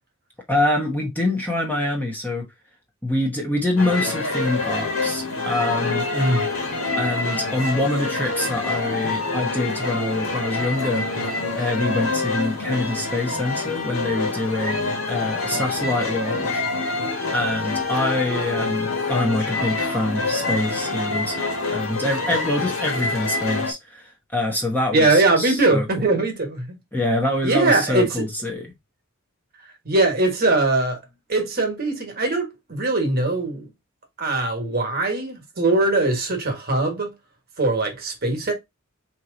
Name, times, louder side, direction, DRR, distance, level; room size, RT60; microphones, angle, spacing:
voice 1, 0.5-2.5 3.0-6.1 7.0-11.1 11.5-16.7 17.3-26.1 26.9-28.7, left 1 dB, 10° left, 1.0 m, -25 dB
sound 1, 3.8-23.7, left 3 dB, 70° left, 1.4 m, -26 dB
voice 2, 6.1-6.5 24.9-26.8 27.4-28.2 29.8-31.0 31.3-33.7 34.2-37.1 37.6-38.5, right 2 dB, 45° right, 1.5 m, -21 dB
4.6 x 3.0 x 3.8 m
head